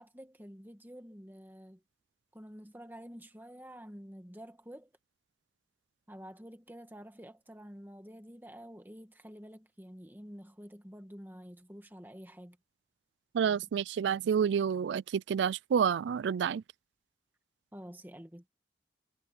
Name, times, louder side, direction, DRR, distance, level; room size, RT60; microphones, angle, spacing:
voice 1, 0.0-1.8 2.3-4.9 6.1-12.6 17.7-18.5, equal, 10° right, 1.8 m, -49 dB
voice 2, 13.3-16.6, right 7 dB, 80° right, 0.3 m, -29 dB
head